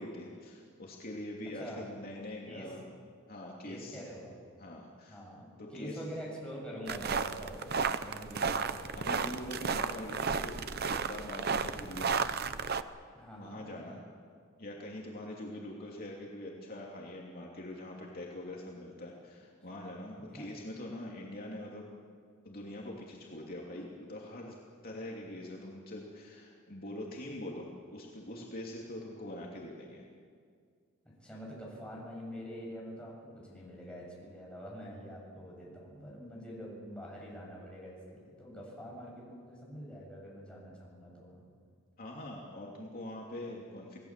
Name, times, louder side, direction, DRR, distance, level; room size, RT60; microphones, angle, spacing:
voice 1, 0.0-2.8 3.3-4.0 4.6-5.2 5.6-6.0 8.9-12.2 13.4-14.0 14.6-21.8 22.4-24.5 24.8-30.0 42.0-44.0, left 1 dB, 45° left, -2 dB, 2.9 m, -43 dB
voice 2, 1.5-1.9 2.5-2.8 3.6-4.4 5.1-7.7 8.0-9.0 13.1-13.7 20.3-20.5 31.0-41.5, equal, 5° left, -4 dB, 7.4 m, -45 dB
sound 1, 6.9-12.8, right 5 dB, 50° right, 0.8 m, -33 dB
28.0 x 18.5 x 7.5 m, 2.1 s
head